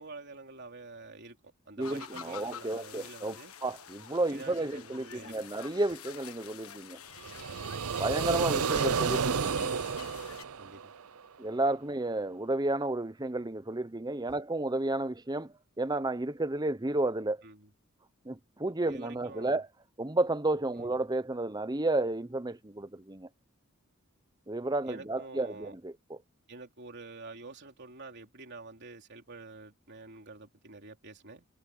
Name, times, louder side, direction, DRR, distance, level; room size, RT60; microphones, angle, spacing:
voice 1, 0.0-3.5 4.3-5.4 10.6-10.9 17.4-17.7 18.9-19.6 20.8-20.9 24.8-25.8 26.5-31.5, right 3 dB, 55° right, 3.6 m, -48 dB
sound 1, 1.8-10.4, left 8 dB, 85° left, 1.6 m, -48 dB
voice 2, 1.8-7.0 7.9-9.7 11.4-17.4 18.3-19.7 20.0-23.3 24.5-26.2, right 2 dB, 20° right, 0.9 m, -32 dB
sound 2, 7.2-11.2, right 6 dB, 90° right, 0.7 m, -31 dB
head